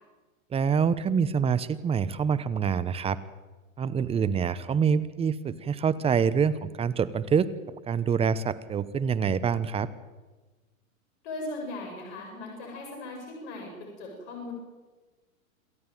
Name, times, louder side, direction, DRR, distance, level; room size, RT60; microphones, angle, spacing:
voice 1, 0.5-3.2 3.8-7.5 7.9-9.9, right 6 dB, 15° right, 16 dB, 0.9 m, -26 dB
voice 2, 11.2-14.5, left 2 dB, 50° left, 2 dB, 7.5 m, -38 dB
27.5 x 14.0 x 9.2 m, 1.2 s
hypercardioid pair, 120°, 42 cm